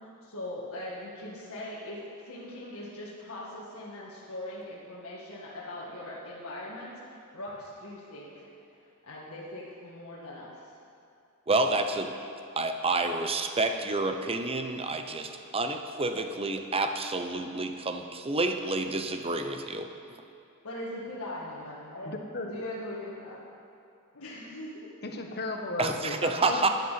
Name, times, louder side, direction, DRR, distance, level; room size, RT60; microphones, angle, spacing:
voice 1, 0.2-8.5 9.0-10.6 20.6-22.1 22.5-23.4 24.1-24.9, left 1 dB, 65° left, -7 dB, 1.9 m, -40 dB
voice 2, 11.5-12.1 12.6-19.9 25.8-26.7, right 3 dB, 25° right, 6 dB, 0.8 m, -29 dB
voice 3, 22.0-22.6 25.0-26.7, left 2 dB, 50° left, 3 dB, 1.2 m, -35 dB
13.5 x 10.5 x 5.8 m, 2.5 s
head